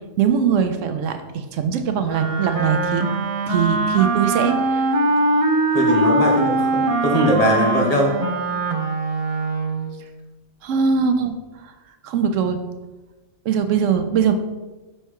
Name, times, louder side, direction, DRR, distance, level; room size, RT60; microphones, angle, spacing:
voice 1, 0.2-3.0 3.5-4.9 10.6-11.3 11.6-11.7 12.0-12.6 13.5-14.3, right 7 dB, 85° right, 8 dB, 1.0 m, -21 dB
Wind instrument woodwind instrument, 2.0-9.9, right 2 dB, 40° right, 0.5 m, -21 dB
voice 2, 5.7-8.1, equal, 30° left, -2 dB, 1.3 m, -20 dB
5.6 x 4.4 x 4.6 m, 1.2 s
omnidirectional pair, 1.3 m